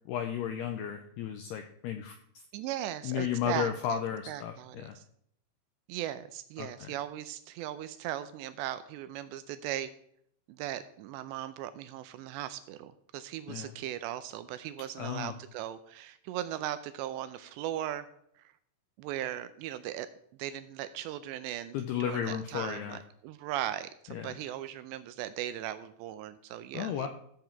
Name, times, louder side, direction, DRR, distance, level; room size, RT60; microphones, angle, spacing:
voice 1, 0.1-2.2 3.0-4.5 4.8-5.0 6.6-6.9 13.5-13.7 15.0-15.3 21.7-23.0 24.1-24.3 26.7-27.1, left 9 dB, 80° left, 6 dB, 2.4 m, -33 dB
voice 2, 2.5-4.0 4.3-5.0 5.9-9.9 10.5-18.1 18.4-18.5 19.0-20.1 20.4-27.1, right 12 dB, 85° right, 12 dB, 2.6 m, -38 dB
14.5 x 7.8 x 4.5 m, 0.66 s
omnidirectional pair, 5.5 m